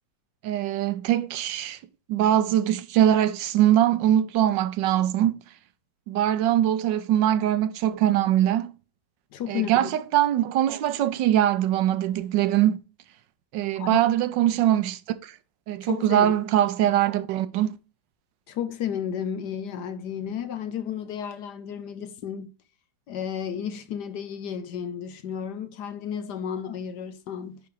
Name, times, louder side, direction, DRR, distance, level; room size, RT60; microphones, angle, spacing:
voice 1, 0.4-1.8 2.1-5.4 6.1-8.7 9.5-12.8 13.5-15.3 15.7-17.8, right 11 dB, 80° right, 1.3 m, -22 dB
voice 2, 9.3-9.9 13.8-14.0 15.8-16.3 18.5-22.5 23.1-27.6, left 8 dB, 70° left, 1.4 m, -32 dB
10.0 x 3.4 x 4.7 m
omnidirectional pair, 2.0 m